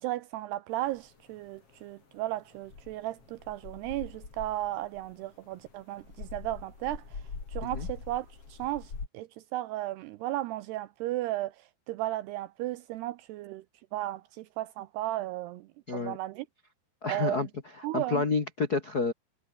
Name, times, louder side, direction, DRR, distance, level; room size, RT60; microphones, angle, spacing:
voice 1, 0.0-7.2 7.5-13.6 13.9-15.7 15.9-16.5 17.1-17.5 17.8-18.2, right 15 dB, 80° right, 2.4 m, -35 dB
sound 1, 0.8-1.8 2.0-9.1, left 4 dB, 30° left, 4.6 m, -43 dB
voice 2, 17.0-17.5 17.9-19.1, left 4 dB, 70° left, 0.9 m, -29 dB
omnidirectional pair, 5.4 m